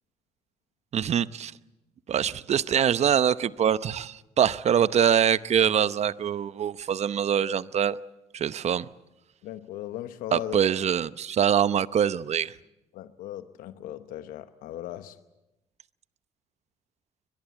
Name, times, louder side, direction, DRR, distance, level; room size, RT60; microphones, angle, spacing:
voice 1, 0.9-1.5 2.1-8.0 8.3-8.9 10.3-12.5, right 9 dB, 50° right, 0.8 m, -24 dB
voice 2, 9.4-10.6 12.9-15.2, left 12 dB, 80° left, 0.9 m, -37 dB
22.5 x 22.0 x 8.3 m
supercardioid pair, 70°, 14 cm